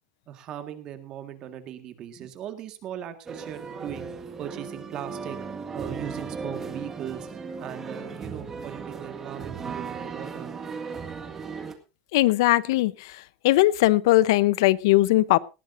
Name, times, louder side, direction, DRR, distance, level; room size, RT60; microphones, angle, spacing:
voice 1, 0.3-4.1 4.4-5.4 5.7-7.3 7.6-10.5, right 10 dB, 35° right, 1.8 m, -39 dB
sound 1, 3.3-11.7, right 5 dB, 15° right, 1.8 m, -36 dB
voice 2, 12.1-12.9 13.4-15.4, left 17 dB, 80° left, 0.8 m, -19 dB
19.0 x 15.0 x 2.6 m
cardioid pair, 175°, 2 cm